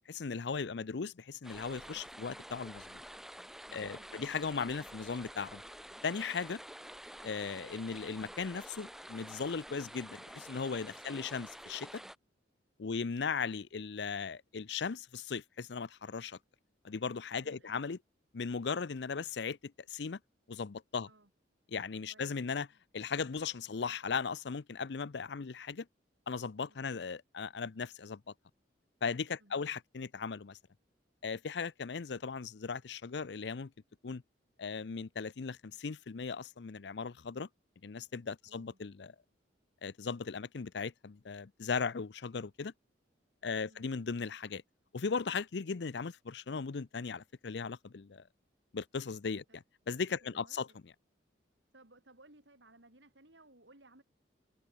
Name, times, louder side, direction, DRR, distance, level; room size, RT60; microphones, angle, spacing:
voice 1, 0.1-3.0 3.7-5.6 6.0-6.6 7.2-12.0 12.8-16.4 16.8-18.0 18.3-20.2 20.5-21.1 21.7-22.7 22.9-25.9 26.3-28.2 29.0-30.6 31.2-33.7 34.0-34.2 34.6-37.5 37.8-39.2 39.8-42.7 43.4-44.6 44.9-48.2 48.7-50.7, left 5 dB, 65° left, 0.6 m, -37 dB
voice 2, 0.7-1.1 3.8-4.4 12.9-13.1 17.4-17.9 21.1-21.3 22.1-22.3 26.7-27.0 29.4-29.6 38.5-38.8 43.7-43.9 49.5-49.6 50.2-50.8 51.7-54.0, right 2 dB, 75° right, 6.5 m, -62 dB
sound 1, 1.4-12.2, equal, ahead, 2.8 m, -49 dB
head